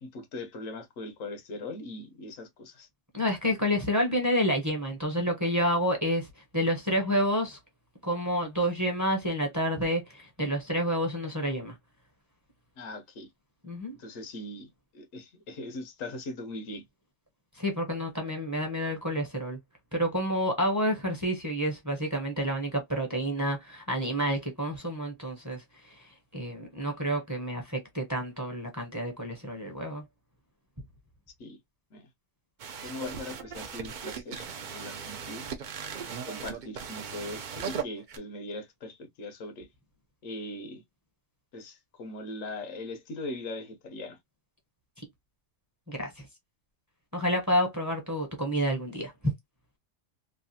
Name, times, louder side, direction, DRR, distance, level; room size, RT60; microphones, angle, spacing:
voice 1, 0.0-2.9 12.8-13.3 13.9-16.8 31.4-31.6 31.9-32.1 32.8-35.5 36.3-39.7 40.2-40.8 41.5-44.2, left 2 dB, 85° left, 1.3 m, -40 dB
voice 2, 3.1-6.3 6.5-7.6 8.0-11.7 13.6-14.0 17.6-19.6 19.9-25.6 26.3-30.0 45.9-46.1 47.1-49.1, equal, 15° right, 0.8 m, -29 dB
sound 1, 32.6-38.2, right 6 dB, 55° right, 0.5 m, -38 dB
3.1 x 2.3 x 2.6 m
omnidirectional pair, 1.3 m